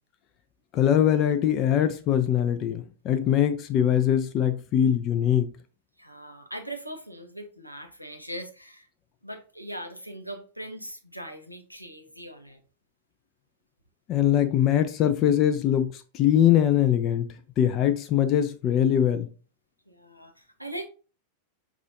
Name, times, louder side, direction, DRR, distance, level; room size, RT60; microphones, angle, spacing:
voice 1, 0.7-5.5 14.1-17.3 17.6-19.3, left 10 dB, 35° left, 0.4 m, -22 dB
voice 2, 6.0-8.9 9.2-12.6 19.9-20.8, right 1 dB, 90° left, 0.5 m, -40 dB
4.9 x 2.4 x 2.7 m
figure-of-eight pair, 90°, 0 cm